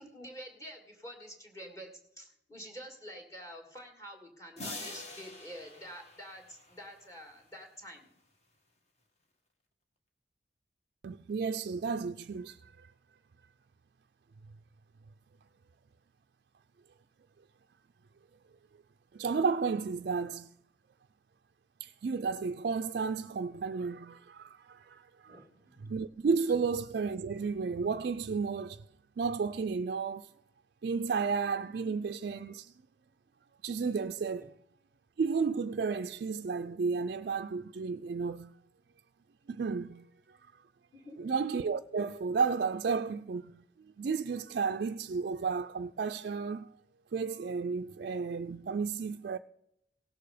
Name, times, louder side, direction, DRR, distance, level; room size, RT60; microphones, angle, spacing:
voice 1, 0.0-8.1 25.3-25.5 40.9-41.2, equal, 15° left, 1.9 m, -48 dB
sound 1, 4.6-7.1, left 2 dB, 35° left, 1.4 m, -45 dB
voice 2, 11.0-12.9 19.1-20.5 21.8-25.4 25.8-28.9 29.2-30.3 30.8-32.7 33.6-34.5 35.2-38.5 39.5-40.4 41.2-46.7 47.1-49.4, right 5 dB, 55° right, 0.3 m, -33 dB
17.0 x 6.9 x 4.9 m
head